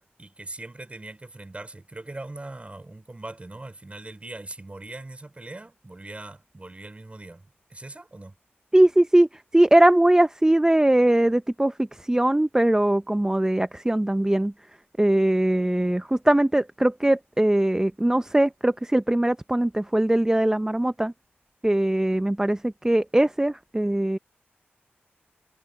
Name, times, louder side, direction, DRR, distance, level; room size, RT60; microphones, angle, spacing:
voice 1, 0.0-8.3, right 2 dB, 30° right, 3.7 m, -41 dB
voice 2, 8.7-14.5 15.0-21.1 21.6-24.2, right 1 dB, 15° right, 0.7 m, -21 dB
cardioid pair, 50°, 4 cm